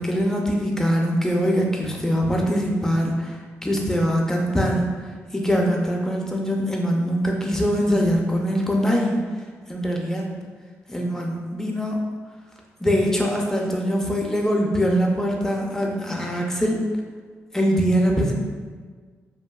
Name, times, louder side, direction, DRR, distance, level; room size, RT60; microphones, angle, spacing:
voice 1, 0.0-4.9 5.3-9.2 9.7-10.2 10.9-12.0 12.8-16.8 17.5-18.3, equal, 10° left, -1 dB, 0.5 m, -22 dB
2.7 x 2.5 x 2.3 m, 1.5 s
cardioid pair, 80°, 6 cm